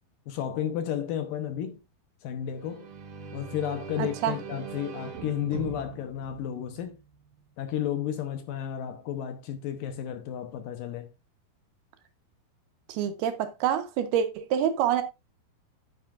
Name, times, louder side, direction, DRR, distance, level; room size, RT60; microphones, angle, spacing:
voice 1, 0.3-1.8 2.2-2.9 3.3-7.0 7.6-11.1, left 10 dB, 75° left, 2.2 m, -32 dB
sound 1, 2.5-7.2, right 6 dB, 60° right, 2.6 m, -41 dB
voice 2, 4.0-4.4 12.9-15.0, right 9 dB, 80° right, 3.1 m, -27 dB
9.9 x 9.4 x 2.5 m
omnidirectional pair, 4.5 m